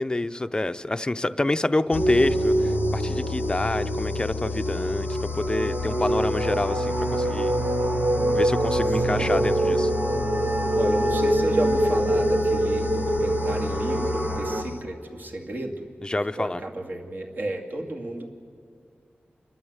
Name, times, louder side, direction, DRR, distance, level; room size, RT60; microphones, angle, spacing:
voice 1, 0.0-7.5 8.3-9.9 16.0-16.6, left 2 dB, 20° left, 12 dB, 0.6 m, -27 dB
sound 1, 1.9-15.0, left 7 dB, 70° left, 0.6 m, -33 dB
sound 2, 1.9-14.6, right 1 dB, 70° right, 2.6 m, -25 dB
voice 2, 8.9-9.4 10.7-15.9 16.4-18.3, right 1 dB, 55° right, 0 dB, 2.3 m, -32 dB
29.5 x 12.5 x 8.0 m, 2.3 s
wide cardioid pair, 105°, 4 cm